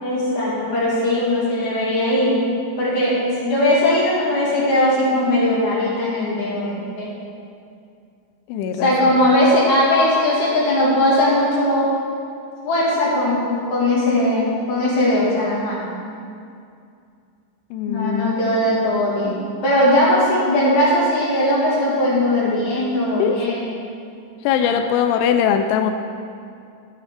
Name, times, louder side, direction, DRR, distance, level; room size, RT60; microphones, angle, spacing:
voice 1, 0.0-2.4 2.8-7.1 8.8-11.9 12.6-15.8 17.9-23.7 24.6-24.8, left 1 dB, 50° left, -7 dB, 2.7 m, -19 dB
voice 2, 8.5-9.2 17.7-18.4 23.2-23.5 24.4-25.9, left 8 dB, 85° left, 6 dB, 2.7 m, -21 dB
11.5 x 9.6 x 3.7 m, 2.4 s
omnidirectional pair, 5.9 m